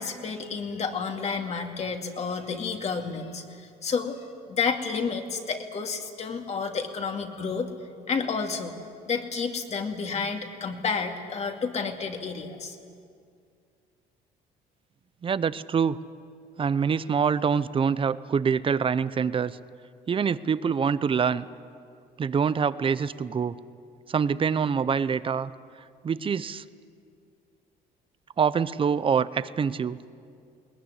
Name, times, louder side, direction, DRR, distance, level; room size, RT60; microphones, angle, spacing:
voice 1, 0.0-4.2 4.5-7.7 8.1-8.8 9.1-12.8, left 5 dB, 40° left, 4 dB, 2.5 m, -30 dB
voice 2, 15.2-16.0 16.6-19.6 20.1-21.4 22.2-23.6 24.1-25.5 26.0-26.6 28.4-30.0, right 6 dB, 30° right, 16 dB, 0.7 m, -25 dB
21.0 x 19.5 x 9.9 m, 2.3 s
cardioid pair, 110°, 17 cm